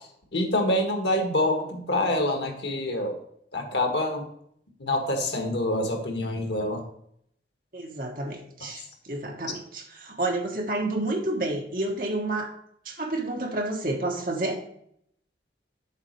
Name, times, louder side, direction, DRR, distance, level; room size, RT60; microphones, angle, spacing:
voice 1, 0.3-3.1 3.5-4.2 4.8-6.8 8.6-8.7, left 1 dB, 85° left, 4 dB, 1.5 m, -26 dB
voice 2, 7.7-12.5 12.8-14.6, right 2 dB, 50° right, 2 dB, 1.3 m, -30 dB
7.3 x 4.2 x 6.4 m, 0.69 s
head